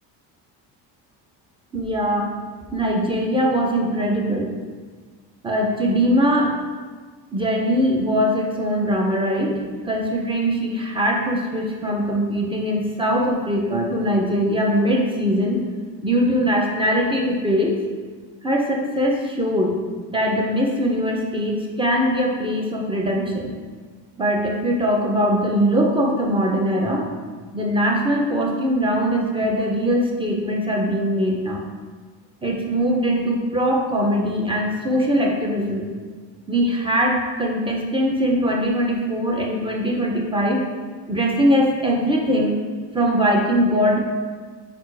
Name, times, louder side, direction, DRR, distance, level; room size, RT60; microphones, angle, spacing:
voice 1, 1.7-2.3 2.7-4.5 5.4-6.5 7.3-9.5 9.8-15.6 16.0-17.7 18.4-19.8 20.1-23.5 24.2-27.0 27.5-31.7 32.4-35.9 36.5-40.6 41.1-42.5 42.9-44.0, equal, 10° right, -1 dB, 1.4 m, -21 dB
5.3 x 4.2 x 5.0 m, 1.5 s
supercardioid pair, 85°, 46 cm